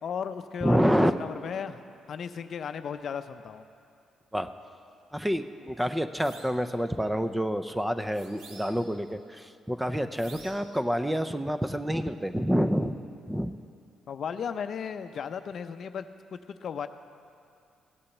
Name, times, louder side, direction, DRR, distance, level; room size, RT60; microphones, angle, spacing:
voice 1, 0.0-0.8 1.1-3.6 14.1-16.9, left 7 dB, 60° left, 9 dB, 0.6 m, -35 dB
voice 2, 0.6-1.1 4.3-4.5 5.1-13.0 13.3-13.5, equal, 5° right, 9 dB, 0.6 m, -27 dB
sound 1, 6.2-6.6 8.1-9.0 10.1-10.8, right 3 dB, 85° right, 1.4 m, -50 dB
16.5 x 8.5 x 7.2 m, 2.4 s
cardioid pair, 90°, 0 cm